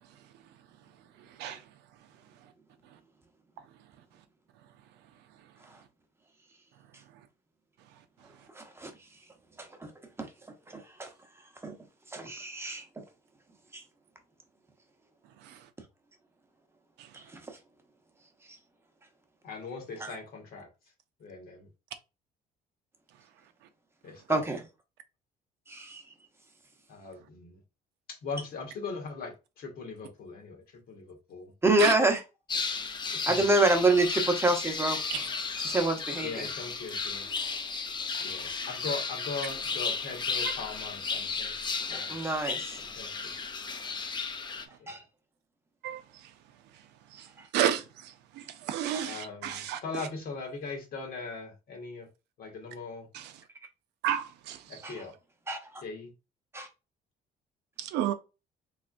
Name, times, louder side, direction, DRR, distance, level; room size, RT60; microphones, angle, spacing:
voice 1, 8.6-8.9 9.6-9.9 10.2-10.3 10.7-11.1 11.6-11.7 12.1-12.8 13.7-13.8 17.1-17.2 20.0-20.1 24.3-24.6 25.7-26.0 31.6-32.2 33.3-35.2 35.6-36.3 41.9-42.8 44.9-45.0 48.9-49.1 49.5-49.6 54.8-55.0 55.5-55.8 56.5-56.7, right 2 dB, 15° right, 0.9 m, -27 dB
voice 2, 19.4-20.7 21.2-21.7 24.0-24.4 26.9-27.6 28.1-31.5 33.1-33.4 36.2-37.3 38.2-42.1 43.0-43.3 44.8-45.0 49.0-52.1 52.4-53.1 54.7-55.1 55.8-56.1, left 4 dB, 60° left, 1.4 m, -40 dB
sound 1, 32.5-44.7, left 4 dB, 25° left, 0.5 m, -34 dB
voice 3, 48.7-49.8 54.0-54.6 57.9-58.1, right 11 dB, 85° right, 0.6 m, -29 dB
3.6 x 3.2 x 2.5 m
cardioid pair, 110°, 17 cm